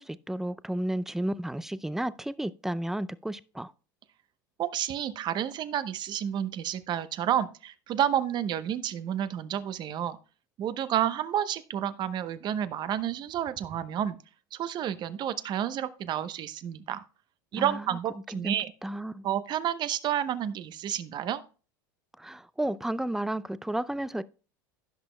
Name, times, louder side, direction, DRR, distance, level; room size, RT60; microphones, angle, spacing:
voice 1, 0.0-3.7 17.5-17.8 18.3-18.5 18.8-19.3 22.2-24.2, right 1 dB, 5° right, 0.4 m, -32 dB
voice 2, 4.6-10.2 10.6-14.2 14.5-17.0 17.5-18.7 19.2-21.4, right 10 dB, 45° right, 0.8 m, -30 dB
16.0 x 6.0 x 2.2 m
hypercardioid pair, 95°, 11 cm